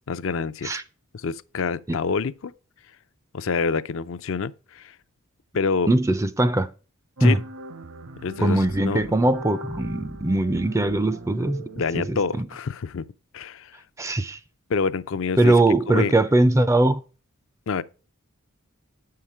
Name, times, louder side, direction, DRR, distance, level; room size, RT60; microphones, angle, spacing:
voice 1, 0.1-0.8 1.1-2.5 3.3-4.9 5.5-5.9 7.2-7.4 8.2-9.0 11.8-13.1 13.3-13.8 14.7-15.5 15.9-16.1 17.7-17.8, left 5 dB, 60° left, 0.4 m, -27 dB
voice 2, 5.9-6.7 7.2-7.4 8.4-11.6 11.9-12.4 14.0-14.4 15.4-17.0, right 2 dB, 15° right, 0.4 m, -21 dB
midi is fun, 7.2-12.3, right 1 dB, 60° right, 0.8 m, -40 dB
7.2 x 5.7 x 4.8 m
head